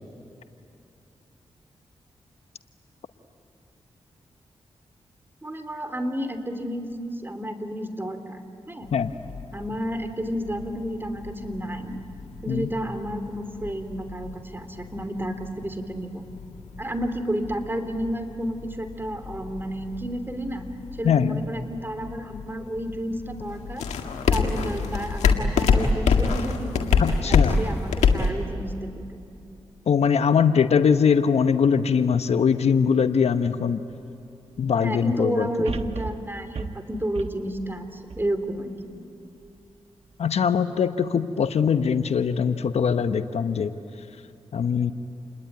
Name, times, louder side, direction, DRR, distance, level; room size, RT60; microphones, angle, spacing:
voice 1, 5.4-6.9 7.2-8.9 9.5-12.0 12.4-16.2 16.8-20.6 20.9-23.9 24.3-26.9 27.3-29.2 34.8-38.7, equal, 20° right, 8 dB, 3.2 m, -31 dB
sound 1, 8.8-28.3, left 5 dB, 85° left, 1.8 m, -28 dB
voice 2, 21.0-21.4 27.0-27.7 29.9-33.8 34.6-35.7 40.2-43.7 44.5-44.9, left 6 dB, 70° left, 10 dB, 1.0 m, -22 dB
sound 2, 33.9-34.0 35.7-39.0 39.5-39.6, right 4 dB, 65° right, 1.1 m, -36 dB
28.5 x 21.0 x 9.5 m, 2.6 s
supercardioid pair, 45°, 11 cm